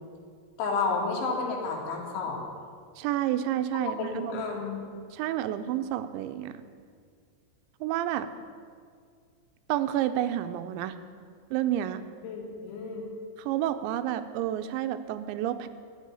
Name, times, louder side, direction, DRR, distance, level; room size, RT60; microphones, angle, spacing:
voice 1, 0.6-2.4 3.7-4.9 12.2-13.1, left 4 dB, 85° left, 0 dB, 4.6 m, -31 dB
voice 2, 3.0-4.4 5.1-6.6 7.8-8.3 9.7-11.0 11.5-12.0 13.4-15.7, right 12 dB, 90° right, 10 dB, 3.0 m, -30 dB
13.0 x 8.2 x 9.8 m, 2.1 s
omnidirectional pair, 5.2 m